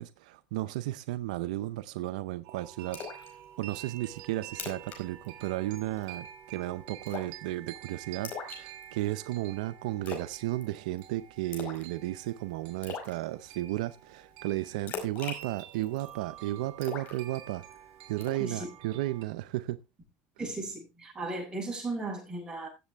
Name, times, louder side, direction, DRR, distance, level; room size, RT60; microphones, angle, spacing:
voice 1, 0.0-3.0 3.6-17.6 18.1-19.8, right 16 dB, 90° right, 0.5 m, -34 dB
sound 1, 2.4-19.2, right 11 dB, 70° right, 3.5 m, -49 dB
Splash splatter, 2.9-3.3 3.7-3.8 4.2-4.3 4.5-5.0 5.2-5.5 5.8-6.1 7.1-7.4 8.2-9.1 10.1-10.4 10.6-11.0 11.5-11.9 12.2-12.3 12.8-13.1 14.9-16.1 16.8-17.7 18.2-18.5, left 6 dB, 55° left, 5.2 m, -40 dB
voice 2, 20.4-22.7, right 2 dB, 20° right, 8.0 m, -36 dB
16.5 x 7.5 x 3.4 m
supercardioid pair, 105°, 4 cm